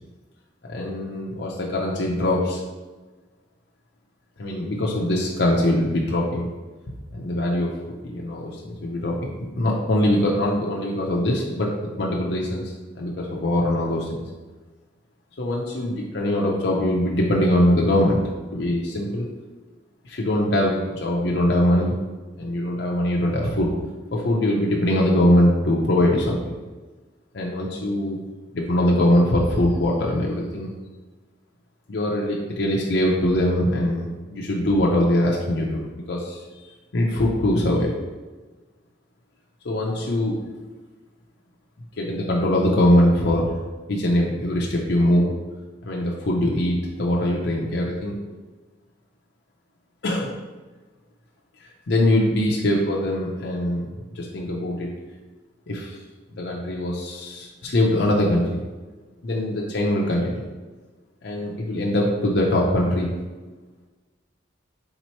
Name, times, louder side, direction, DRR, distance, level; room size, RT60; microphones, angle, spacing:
voice 1, 0.7-2.6 4.4-6.5 7.1-7.8 8.0-11.7 12.0-12.6 13.0-14.2 15.4-18.2 18.5-19.3 20.0-21.9 22.4-23.7 24.1-26.5 27.3-28.2 28.5-30.7 31.9-36.4 36.9-37.9 39.6-40.4 42.0-43.6 43.9-45.3 45.8-48.1 50.0-50.3 51.9-53.9 54.1-54.9 55.7-56.0 56.4-58.6 59.2-60.3 61.2-63.2, left 1 dB, 60° left, -3 dB, 0.5 m, -22 dB
3.6 x 3.0 x 4.3 m, 1.3 s
head